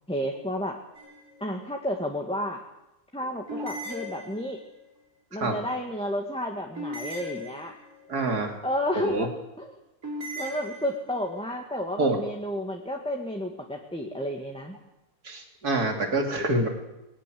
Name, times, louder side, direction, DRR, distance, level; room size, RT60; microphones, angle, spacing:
voice 1, 0.1-0.8 1.4-2.6 3.1-4.6 5.3-7.7 8.6-9.3 9.6-9.7 10.4-14.8, equal, 5° left, 1 dB, 1.9 m, -31 dB
sound 1, 1.0-1.5 3.5-4.8 6.8-8.1 10.0-11.3, left 1 dB, 65° right, 6.2 m, -38 dB
voice 2, 8.1-8.5 9.0-9.3 12.0-12.2 15.2-16.7, right 2 dB, 85° right, 4 dB, 3.4 m, -26 dB
21.5 x 19.5 x 7.9 m, 0.91 s
omnidirectional pair, 1.6 m